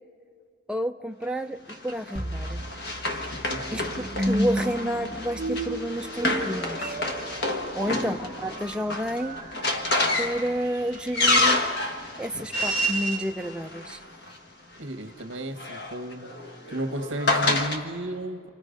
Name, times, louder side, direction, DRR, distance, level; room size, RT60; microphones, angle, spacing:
voice 1, 0.7-2.6 3.7-7.0 7.7-9.4 10.2-11.6 12.2-14.0, equal, 5° right, 4 dB, 0.6 m, -30 dB
Run, 1.7-14.3 15.3-17.8, left 2 dB, 55° left, 1.6 m, -29 dB
sound 1, 2.1-11.3, right 1 dB, 20° right, 1.4 m, -34 dB
voice 2, 3.5-4.1 7.8-8.2 14.8-16.3 16.7-18.5, right 1 dB, 70° right, 7 dB, 1.4 m, -34 dB
30.0 x 27.5 x 5.2 m, 2.1 s
head